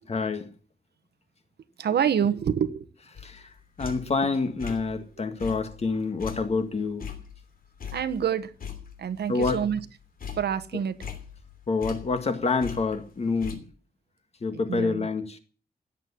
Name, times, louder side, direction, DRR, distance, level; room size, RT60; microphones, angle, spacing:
voice 1, 0.1-0.5 3.2-3.5 3.8-7.1 9.3-9.6 11.7-13.7 14.4-15.4, left 4 dB, 40° left, 1.8 m, -27 dB
voice 2, 1.8-2.9 7.9-8.5 9.0-9.8 10.4-11.0 14.7-15.1, right 8 dB, 85° right, 1.3 m, -26 dB
sound 1, 3.1-4.2 4.6-5.0 5.4-8.3 8.6-9.9 10.2-12.3 12.6-13.6, left 8 dB, 60° left, 3.1 m, -40 dB
16.5 x 8.2 x 9.9 m
wide cardioid pair, 170°, 17 cm